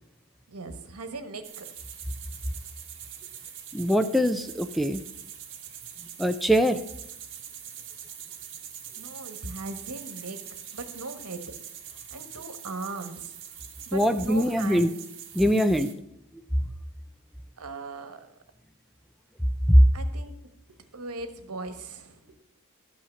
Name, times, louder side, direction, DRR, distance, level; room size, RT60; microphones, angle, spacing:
voice 1, 0.5-1.7 9.0-10.4 10.7-11.5 12.1-13.4 13.9-14.9 17.6-18.3 19.9-20.3 20.9-22.2, right 3 dB, 85° right, 8 dB, 1.3 m, -38 dB
sound 1, 1.4-15.9, right 9 dB, 55° right, 1.6 m, -43 dB
voice 2, 3.7-5.0 6.2-6.8 13.9-14.9 15.3-15.9 19.7-19.8, equal, ahead, 6 dB, 0.4 m, -21 dB
12.5 x 5.7 x 7.0 m, 0.77 s
head